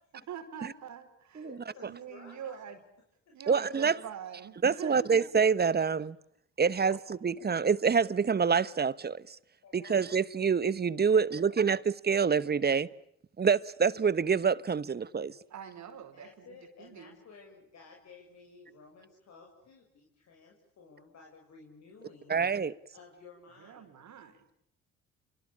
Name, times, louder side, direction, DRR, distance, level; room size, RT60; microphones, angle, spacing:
voice 1, 0.3-1.5 1.8-2.8 3.3-5.1 15.5-17.2 23.6-24.5, right 8 dB, 65° right, 5.1 m, -44 dB
voice 2, 1.4-2.7 3.3-3.4 9.6-10.0 11.1-11.6 16.1-22.4 22.9-23.9, left 4 dB, 60° left, 6.8 m, -54 dB
voice 3, 3.5-4.0 4.6-6.2 6.6-7.0 7.2-9.4 9.7-12.9 13.4-15.3 22.3-22.7, right 6 dB, 30° right, 1.2 m, -26 dB
28.5 x 24.0 x 8.6 m
supercardioid pair, 65°, 31 cm